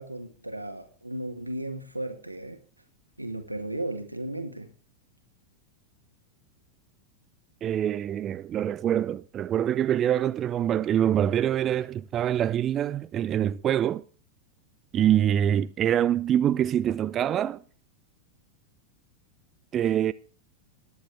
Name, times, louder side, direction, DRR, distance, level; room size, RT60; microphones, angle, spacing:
voice 1, 0.0-2.6 3.2-4.7, right 1 dB, 85° right, 1.9 m, -35 dB
voice 2, 7.6-14.0 14.9-17.6 19.7-20.1, right 10 dB, 30° right, 0.5 m, -25 dB
18.5 x 9.5 x 3.3 m
figure-of-eight pair, 90°, 0 cm